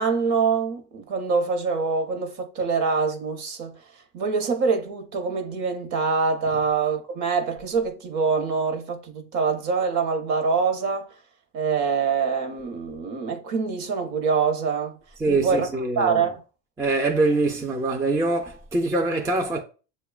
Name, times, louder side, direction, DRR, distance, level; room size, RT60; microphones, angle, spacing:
voice 1, 0.0-3.8 4.1-11.1 11.5-14.9 15.3-15.7 16.0-16.4, right 5 dB, 50° right, 0.8 m, -25 dB
voice 2, 15.2-16.2 16.8-19.6, right 2 dB, 10° right, 0.4 m, -24 dB
6.5 x 2.2 x 2.3 m
supercardioid pair, 115°, 40 cm